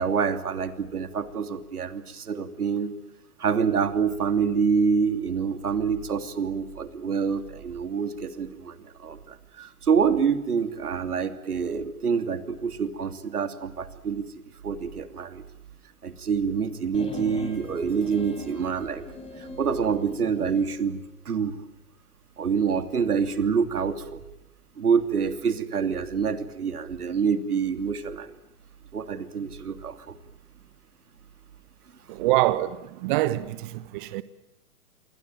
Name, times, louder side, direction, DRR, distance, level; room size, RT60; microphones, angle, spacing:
voice 1, 0.0-2.9 3.4-14.3 14.6-15.4 16.0-19.0 19.4-21.0 21.2-21.6 22.4-24.2 24.8-28.3 28.9-30.1, right 6 dB, 85° right, 3.0 m, -26 dB
sound 1, 16.9-20.7, left 3 dB, 15° left, 4.7 m, -41 dB
voice 2, 32.1-32.8 33.0-34.2, right 16 dB, 35° right, 1.0 m, -25 dB
28.0 x 22.5 x 9.2 m
hypercardioid pair, 135°, 44 cm